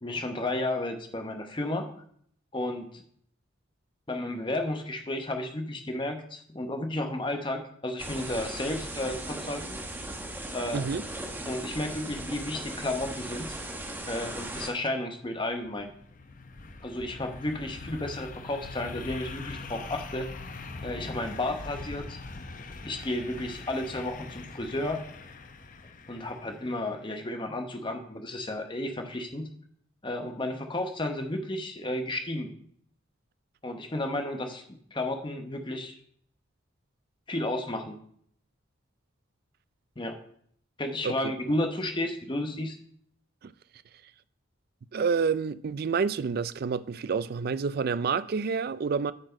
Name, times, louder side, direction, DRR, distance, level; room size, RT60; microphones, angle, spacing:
voice 1, 0.0-1.9 2.5-3.0 4.1-9.8 10.5-10.8 11.5-13.6 14.1-15.9 16.8-20.3 20.8-22.2 22.8-25.0 26.1-29.5 30.0-32.5 33.6-35.9 37.3-38.0 40.0-40.2 40.8-42.8, left 1 dB, 25° left, 1.0 m, -32 dB
sound 1, 8.0-14.7, right 1 dB, 10° right, 1.0 m, -38 dB
sound 2, 15.3-27.0, left 3 dB, 45° left, 0.7 m, -42 dB
voice 2, 44.9-49.1, right 5 dB, 50° right, 0.4 m, -28 dB
8.9 x 6.2 x 5.1 m
head